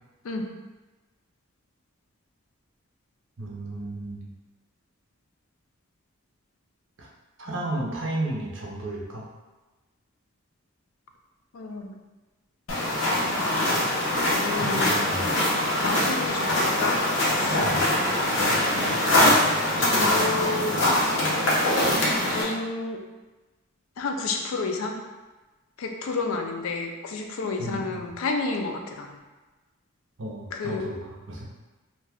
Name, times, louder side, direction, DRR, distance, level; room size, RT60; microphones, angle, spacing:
voice 1, 3.4-4.3 7.0-7.1 7.4-9.3 14.6-15.3 17.6-17.9 27.6-28.0 30.2-31.4, right 1 dB, 60° right, -3 dB, 0.7 m, -33 dB
voice 2, 11.5-11.9 13.2-13.3 14.3-15.0 15.8-17.6 19.8-20.8 22.3-23.0 24.0-24.9 25.8-29.2 30.5-30.8, left 3 dB, 85° left, 3 dB, 0.4 m, -31 dB
sound 1, 12.7-22.4, left 1 dB, 65° left, 0.8 m, -23 dB
2.7 x 2.2 x 3.4 m, 1.2 s
head